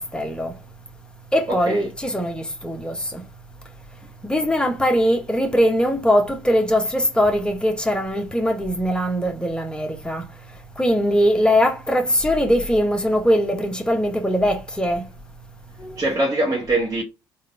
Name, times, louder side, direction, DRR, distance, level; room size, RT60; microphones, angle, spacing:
voice 1, 0.1-0.5 1.3-3.2 4.2-10.2 10.8-15.1 15.8-16.0, equal, 5° left, 1.2 m, -21 dB
voice 2, 1.5-1.9 16.0-17.0, right 2 dB, 25° right, 1.3 m, -23 dB
3.6 x 2.6 x 3.3 m
figure-of-eight pair, 50°, 12 cm